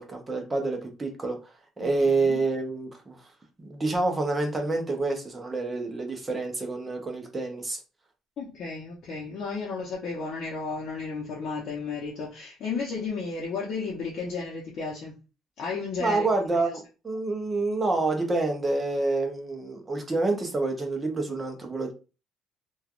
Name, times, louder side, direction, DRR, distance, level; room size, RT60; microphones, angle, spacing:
voice 1, 0.0-1.4 1.8-3.3 3.6-7.8 16.0-21.9, right 3 dB, 15° right, 0.7 m, -28 dB
voice 2, 8.4-15.1 15.6-16.3 16.5-16.7, left 4 dB, 50° left, 0.7 m, -33 dB
3.1 x 2.3 x 2.4 m
cardioid pair, 155°, 0 cm